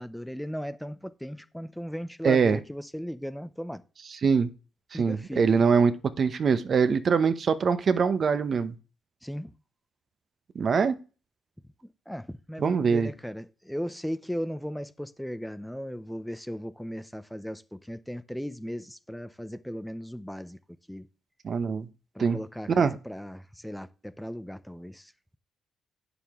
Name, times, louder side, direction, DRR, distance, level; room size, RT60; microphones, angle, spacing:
voice 1, 0.0-3.8 4.9-5.6 9.2-9.5 11.8-20.6 20.9-21.1 22.1-25.4, equal, ahead, 0.6 m, -37 dB
voice 2, 2.2-2.6 4.2-4.5 4.9-8.7 10.5-11.0 12.6-13.1 21.4-21.9 22.2-22.4 22.8-22.9, right 5 dB, 50° right, 0.8 m, -23 dB
9.0 x 7.0 x 3.6 m
cardioid pair, 90°, 0 cm